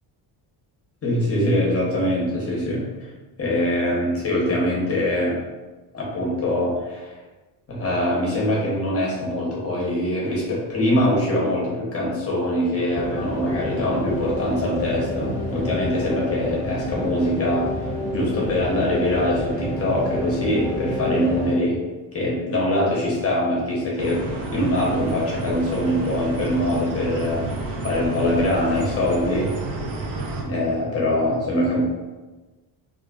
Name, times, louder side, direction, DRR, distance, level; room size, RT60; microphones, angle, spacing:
voice 1, 1.0-3.1 3.4-5.4 5.9-7.2 7.7-17.7 18.1-21.8 22.1-27.5 27.8-29.5 30.4-31.8, left 1 dB, 30° left, -4 dB, 0.8 m, -23 dB
sound 1, 12.9-21.5, left 1 dB, 15° right, 0.8 m, -29 dB
sound 2, 24.0-30.4, right 3 dB, 80° right, 0.6 m, -30 dB
2.5 x 2.3 x 2.4 m, 1.2 s
cardioid pair, 125°, 44 cm